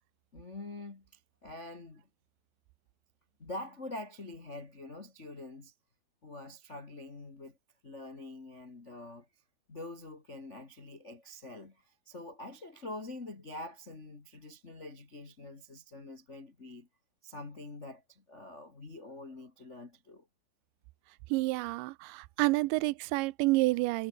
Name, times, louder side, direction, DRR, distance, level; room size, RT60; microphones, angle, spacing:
voice 1, 0.3-2.0 3.4-5.7 6.2-7.6 7.8-9.3 9.7-16.9 17.2-20.3, left 2 dB, 45° left, 0.8 m, -45 dB
voice 2, 21.3-24.1, right 21 dB, 85° right, 2.9 m, -29 dB
omnidirectional pair, 5.1 m